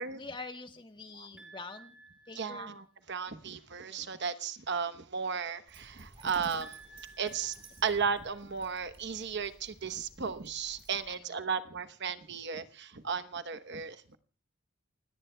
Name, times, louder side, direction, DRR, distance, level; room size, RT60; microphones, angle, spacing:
voice 1, 0.1-2.0 2.3-2.8 3.8-4.1 11.1-11.4, left 3 dB, 25° left, 1.3 m, -46 dB
sound 1, 1.4-3.0 6.6-8.6, right 2 dB, 5° right, 5.1 m, -55 dB
voice 2, 2.4-6.8 7.2-7.5 7.8-14.2, right 6 dB, 55° right, 1.0 m, -35 dB
Dog, 5.7-11.2, right 2 dB, 25° right, 4.1 m, -56 dB
28.5 x 18.0 x 2.2 m
head